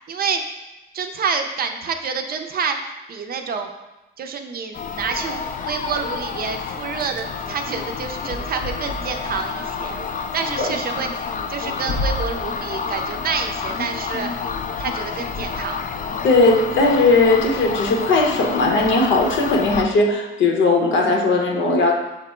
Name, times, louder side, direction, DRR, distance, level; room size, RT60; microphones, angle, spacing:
voice 1, 0.1-0.4 0.9-2.8 3.1-3.7 4.2-10.0 10.3-14.3 14.8-15.8, right 5 dB, 50° right, 6 dB, 0.5 m, -28 dB
sound 1, 4.7-19.8, left 5 dB, 40° left, 0.4 m, -28 dB
voice 2, 16.2-21.9, left 3 dB, 70° left, 1 dB, 0.8 m, -18 dB
5.8 x 2.0 x 4.3 m, 1.0 s
cardioid pair, 90°, 20 cm